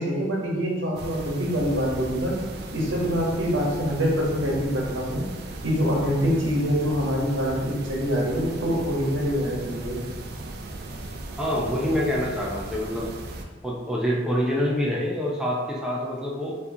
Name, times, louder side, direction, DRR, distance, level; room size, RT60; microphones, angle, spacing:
voice 1, 0.0-2.3 2.7-5.2 5.6-10.0, equal, 85° right, -3 dB, 1.0 m, -25 dB
sound 1, 0.9-13.4, right 2 dB, 55° right, 0.4 m, -37 dB
voice 2, 11.4-13.1 13.6-16.6, equal, 5° right, -4 dB, 0.5 m, -26 dB
4.6 x 2.8 x 2.7 m, 1.2 s
head